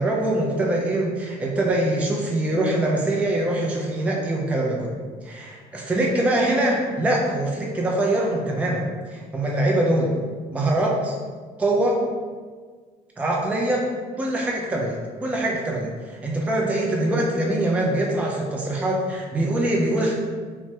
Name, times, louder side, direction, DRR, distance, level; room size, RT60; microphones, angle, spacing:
voice 1, 0.0-4.9 5.2-10.1 10.5-11.1 11.6-12.0 13.2-13.9 14.2-20.1, right 1 dB, 10° right, -2 dB, 0.4 m, -23 dB
2.6 x 2.1 x 3.2 m, 1.5 s
cardioid pair, 110°, 17 cm